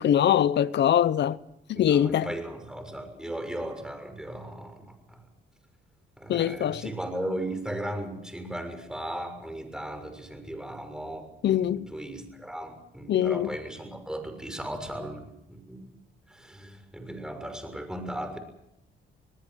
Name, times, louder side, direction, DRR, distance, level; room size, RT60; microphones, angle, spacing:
voice 1, 0.0-1.4 1.7-2.3 6.3-6.9 11.4-11.9 13.1-13.5, left 10 dB, 60° left, 0.9 m, -23 dB
voice 2, 1.8-5.2 6.2-15.8 16.3-18.4, right 1 dB, 5° right, 6.3 m, -37 dB
27.5 x 19.5 x 6.4 m
cardioid pair, 90°, 20 cm